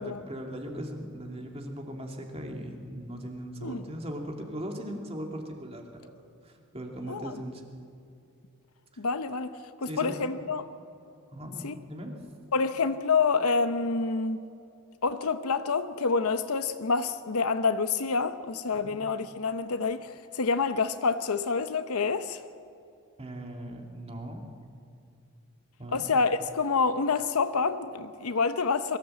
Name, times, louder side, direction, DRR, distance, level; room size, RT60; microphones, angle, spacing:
voice 1, 0.0-6.1 6.4-7.6 9.9-10.3 11.3-12.2 18.8-18.9 23.2-24.5 25.8-26.1, equal, 25° right, 2.4 m, -39 dB
voice 2, 7.1-7.4 9.0-10.7 11.6-11.7 12.5-14.4 15.0-22.4 25.9-29.0, left 4 dB, 75° left, 0.8 m, -27 dB
23.0 x 15.0 x 7.8 m
head